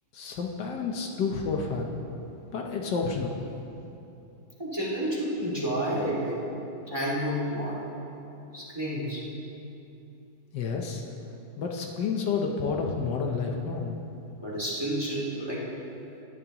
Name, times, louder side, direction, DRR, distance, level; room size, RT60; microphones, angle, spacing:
voice 1, 0.1-2.0 2.5-3.3 10.5-11.0 11.6-14.0, left 5 dB, 70° left, 1 dB, 1.5 m, -30 dB
voice 2, 4.6-6.4 6.9-7.8 8.5-9.2 14.4-15.6, equal, 15° right, -6 dB, 2.1 m, -30 dB
18.0 x 10.5 x 3.0 m, 2.9 s
omnidirectional pair, 2.0 m